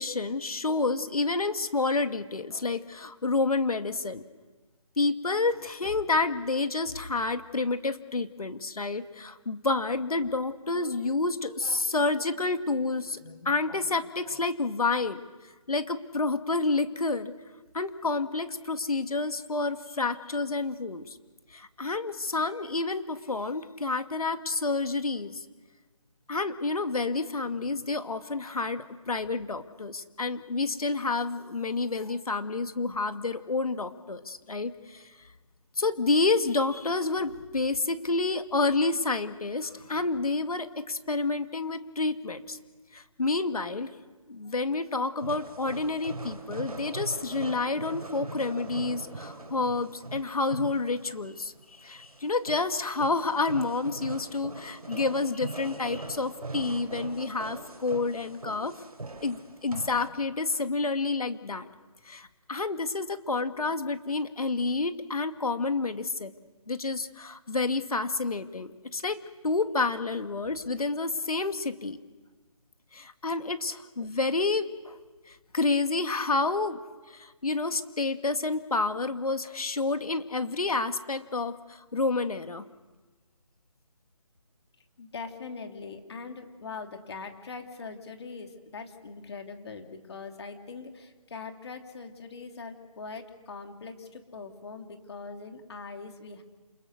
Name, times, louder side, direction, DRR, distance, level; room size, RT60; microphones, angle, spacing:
voice 1, 0.0-4.2 5.0-15.2 15.7-17.3 17.7-21.2 21.5-25.4 26.3-35.2 35.8-42.6 42.9-43.9 44.3-58.7 59.2-61.7 62.0-66.3 66.7-72.0 72.9-75.0 75.3-76.8 77.1-82.6, left 3 dB, 80° left, 9 dB, 2.1 m, -29 dB
sound 1, 45.2-60.1, right 2 dB, 90° right, 6.0 m, -41 dB
voice 2, 85.0-96.4, left 4 dB, 45° left, 5 dB, 3.0 m, -42 dB
29.0 x 28.0 x 6.6 m, 1.3 s
figure-of-eight pair, 165°, 19 cm